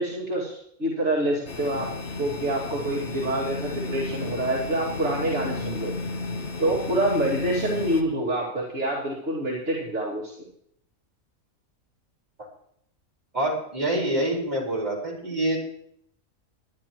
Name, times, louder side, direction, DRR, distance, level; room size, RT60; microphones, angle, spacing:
voice 1, 0.0-1.9 2.2-5.9 6.6-10.3, right 1 dB, 55° right, -6 dB, 2.6 m, -26 dB
sound 1, 1.5-8.0, left 3 dB, 55° left, 1.3 m, -33 dB
voice 2, 13.3-15.6, right 1 dB, 30° right, -4 dB, 4.6 m, -26 dB
21.0 x 10.5 x 3.0 m, 0.70 s
omnidirectional pair, 1.5 m